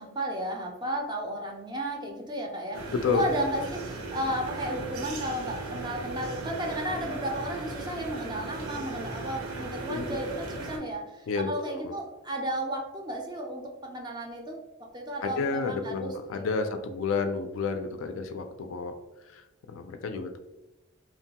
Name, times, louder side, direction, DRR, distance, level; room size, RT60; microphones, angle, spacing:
voice 1, 0.0-14.6 14.9-16.7, right 1 dB, 20° right, 1 dB, 0.4 m, -34 dB
sound 1, 2.7-10.8, right 3 dB, 90° right, 0.6 m, -37 dB
voice 2, 9.9-10.2 11.3-11.9 15.2-18.9 19.2-20.4, left 4 dB, 65° left, 6 dB, 0.3 m, -31 dB
2.9 x 2.2 x 2.8 m, 1.0 s
head